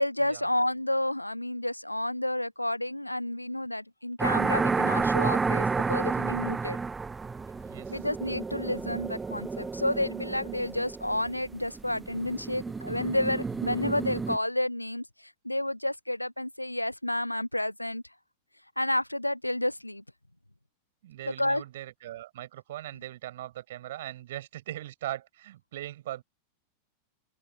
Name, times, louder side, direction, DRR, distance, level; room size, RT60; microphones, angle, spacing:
voice 1, 0.0-6.8 7.9-18.0 18.8-20.0 21.4-21.6, left 1 dB, 85° left, 0.4 m, -30 dB
sound 1, 4.2-14.4, right 4 dB, 15° right, 1.3 m, -31 dB
voice 2, 7.7-8.0 21.0-26.2, right 14 dB, 55° right, 7.6 m, -40 dB
open air
figure-of-eight pair, 90°, 0 cm